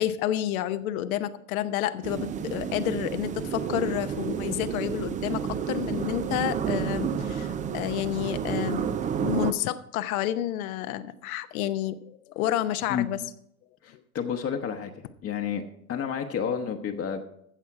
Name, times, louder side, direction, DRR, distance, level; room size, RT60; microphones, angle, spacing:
voice 1, 0.0-8.9 9.2-13.2, left 12 dB, 70° left, 11 dB, 0.9 m, -30 dB
sound 1, 2.0-9.5, right 8 dB, 20° right, 0.4 m, -30 dB
voice 2, 13.8-14.9 15.2-15.6 15.9-17.2, left 8 dB, 30° left, 4 dB, 1.0 m, -30 dB
15.0 x 6.2 x 4.7 m, 0.73 s
hypercardioid pair, 95°, 45 cm